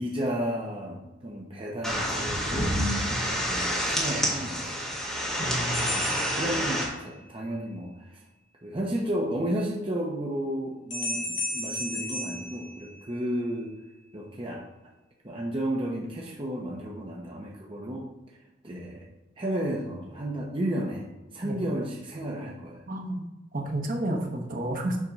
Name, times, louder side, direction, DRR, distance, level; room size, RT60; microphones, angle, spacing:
voice 1, 0.0-2.8 3.3-4.8 5.4-8.2 8.6-13.7 14.1-14.6 15.2-18.1 18.6-19.1 19.4-21.1 21.3-22.8, right 1 dB, 30° right, -2 dB, 0.9 m, -32 dB
sound 1, 1.8-6.9, equal, ahead, 1.7 m, -28 dB
voice 2, 5.4-6.0 21.4-21.5 22.9-23.3 23.5-25.0, right 1 dB, 50° right, 1 dB, 1.1 m, -31 dB
sound 2, 5.7-7.3 10.9-13.4, left 1 dB, 65° left, 2.4 m, -35 dB
7.3 x 3.7 x 5.4 m, 1.1 s
head